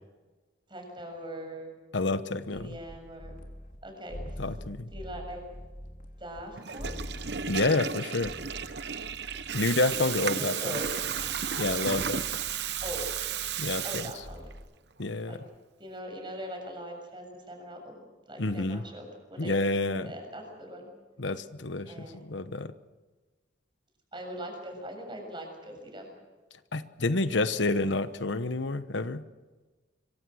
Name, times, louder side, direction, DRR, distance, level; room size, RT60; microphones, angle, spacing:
voice 1, 0.7-1.7 2.5-3.3 3.8-4.2 4.9-5.4 6.2-7.0 10.4-11.0 12.8-13.0 13.8-14.4 15.3-15.4 15.8-18.0 18.3-19.1 19.3-19.6 20.0-20.9 21.9-22.2 24.1-26.1, equal, 25° right, 3 dB, 7.2 m, -41 dB
voice 2, 1.9-2.8 4.4-4.9 7.5-8.3 9.5-10.8 11.6-12.2 13.6-14.1 15.0-15.4 18.4-18.8 19.4-20.1 21.2-22.7 26.7-29.2, left 2 dB, 70° left, 11 dB, 1.1 m, -29 dB
sound 1, 2.5-3.8 4.1-6.4 6.8-14.6, equal, 45° left, 3.6 m, -45 dB
Water tap faucet / Toilet flush, 6.5-14.6, right 8 dB, 60° right, 1.0 m, -33 dB
26.0 x 24.0 x 6.4 m, 1.3 s
head